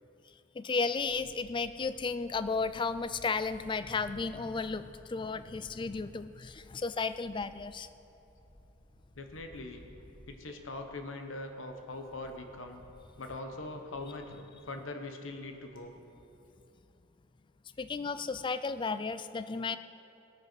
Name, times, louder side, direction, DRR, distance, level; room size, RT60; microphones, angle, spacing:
voice 1, 0.5-7.9 17.8-19.8, left 4 dB, 25° left, 13 dB, 0.4 m, -34 dB
Camera, 1.1-15.8, left 1 dB, 45° left, 1.7 m, -59 dB
voice 2, 9.2-9.8 10.3-12.8 13.2-15.9, left 2 dB, 70° left, 5 dB, 1.1 m, -42 dB
17.5 x 9.2 x 6.0 m, 3.0 s
head